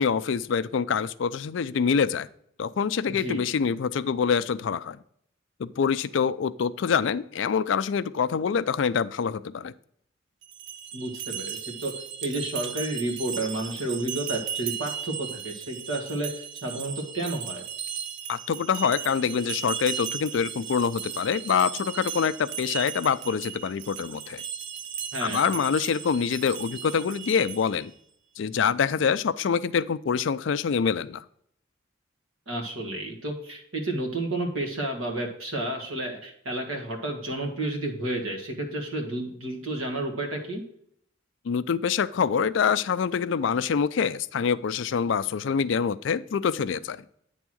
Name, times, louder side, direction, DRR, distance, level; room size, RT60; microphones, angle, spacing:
voice 1, 0.0-2.3 2.6-5.0 5.6-9.7 18.3-24.4 25.2-27.9 28.4-31.2 41.5-47.0, left 6 dB, 65° left, 15 dB, 0.4 m, -25 dB
voice 2, 3.1-3.4 10.9-11.9 12.2-17.6 25.1-25.5 32.5-40.6, right 1 dB, 90° right, 2 dB, 1.8 m, -31 dB
sound 1, 10.4-27.9, right 8 dB, 60° right, 0.5 m, -36 dB
9.2 x 3.6 x 6.1 m, 0.68 s
head